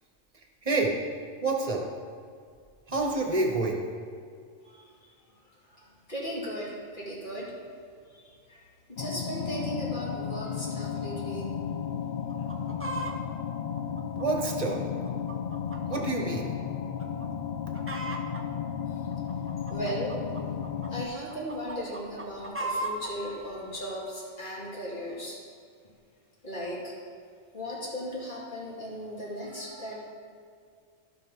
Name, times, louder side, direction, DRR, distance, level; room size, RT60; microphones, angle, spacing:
voice 1, 0.6-0.9 1.4-1.8 2.9-3.8 14.2-14.8 15.9-16.5, right 3 dB, 30° right, 1 dB, 1.3 m, -27 dB
voice 2, 5.7-7.5 8.1-11.5 19.7-20.4 20.9-25.4 26.4-27.0 27.5-30.0, equal, 40° left, -6 dB, 2.7 m, -37 dB
sound 1, 9.0-21.1, left 7 dB, 55° left, 0.5 m, -34 dB
Chicken rooster, 12.3-13.2 13.8-16.0 16.3-16.4 17.0-17.3 17.5-18.4 19.1-20.9 21.3-23.1 23.8-23.9, right 2 dB, 15° right, 0.6 m, -36 dB
15.5 x 5.8 x 3.8 m, 2.2 s
omnidirectional pair, 1.3 m